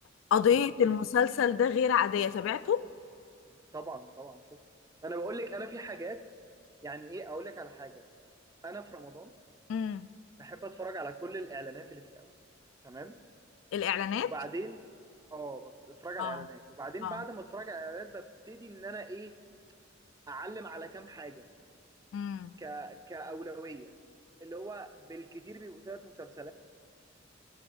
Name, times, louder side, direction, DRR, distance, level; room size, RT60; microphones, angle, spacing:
voice 1, 0.3-2.8 9.7-10.1 13.7-14.3 16.2-16.5 17.0-17.2 22.1-22.5, left 8 dB, 75° left, 16 dB, 0.3 m, -27 dB
voice 2, 3.7-4.6 5.0-6.2 6.8-8.0 8.6-9.3 10.4-12.3 12.8-13.2 14.2-14.8 15.3-19.4 20.3-21.5 22.6-23.9 24.4-26.5, right 2 dB, 15° right, 10 dB, 0.4 m, -41 dB
15.0 x 5.3 x 7.8 m, 2.5 s
head